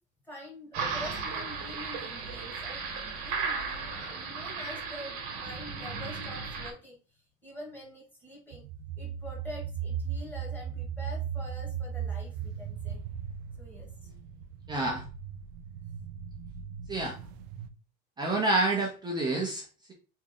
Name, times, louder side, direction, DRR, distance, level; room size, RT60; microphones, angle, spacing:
voice 1, 0.2-8.6 9.0-13.0 13.6-14.1, equal, 5° left, -3 dB, 1.3 m, -46 dB
sound 1, 0.7-6.7, right 5 dB, 55° right, 1.1 m, -35 dB
sound 2, 8.5-17.7, right 7 dB, 80° right, 0.5 m, -37 dB
voice 2, 14.7-15.0 16.9-17.2 18.2-19.9, right 2 dB, 15° right, -1 dB, 0.5 m, -28 dB
3.0 x 2.6 x 3.7 m, 0.36 s
cardioid pair, 165°, 30 cm